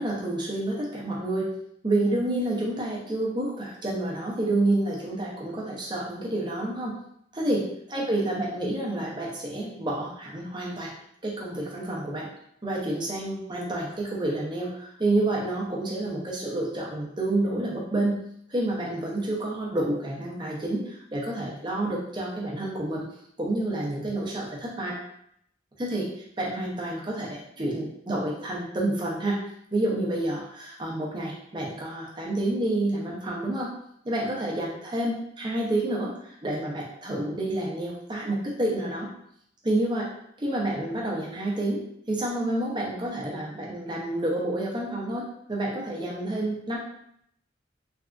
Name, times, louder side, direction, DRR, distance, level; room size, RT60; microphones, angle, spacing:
voice 1, 0.0-1.5 1.8-7.0 7.3-7.6 7.9-10.9 11.2-12.3 12.6-18.2 18.5-23.0 23.4-25.0 25.8-26.1 26.4-29.4 29.7-33.7 34.0-39.1 39.6-40.1 40.4-41.8 42.1-46.8, right 1 dB, 25° right, -3 dB, 0.6 m, -29 dB
3.3 x 2.4 x 2.3 m, 0.70 s
head